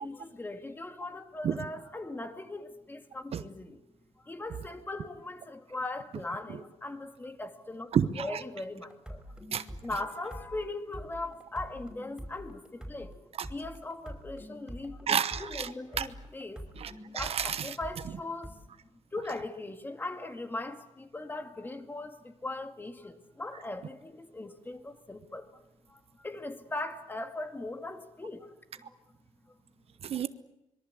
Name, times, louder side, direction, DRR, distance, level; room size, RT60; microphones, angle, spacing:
voice 1, 0.0-3.8 4.2-7.9 8.2-9.2 9.8-13.1 13.5-16.6 17.1-18.5 19.1-25.5 25.9-28.5 28.8-29.0, left 2 dB, 15° left, 2.2 m, -39 dB
voice 2, 7.9-8.4 9.5-9.6 15.1-15.7 16.0-16.1 16.8-17.7 30.0-30.3, right 8 dB, 55° right, 1.0 m, -30 dB
sound 1, 8.9-18.5, equal, 5° right, 5.6 m, -45 dB
25.0 x 22.5 x 8.2 m
cardioid pair, 135°, 12 cm